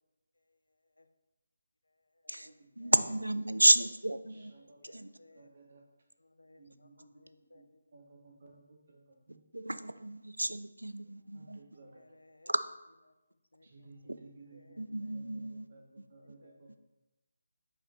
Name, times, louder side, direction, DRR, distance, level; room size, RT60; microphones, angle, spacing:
voice 1, 0.3-1.1 1.8-2.9 4.2-5.5 6.2-7.9 11.8-12.5 13.1-14.1 14.5-15.6 16.2-16.7, left 2 dB, 75° left, 0.6 m, -63 dB
voice 2, 2.8-4.5 4.8-5.1 9.5-11.6 12.5-12.6 14.1-14.2 14.8-15.7, right 1 dB, 85° right, 0.4 m, -30 dB
voice 3, 4.3-5.0 5.3-5.8 6.6-7.2 7.5-7.6 7.9-9.4 11.3-12.0 13.6-16.9, right 3 dB, 45° right, 1.4 m, -57 dB
5.7 x 4.8 x 4.2 m
figure-of-eight pair, 155°, 0 cm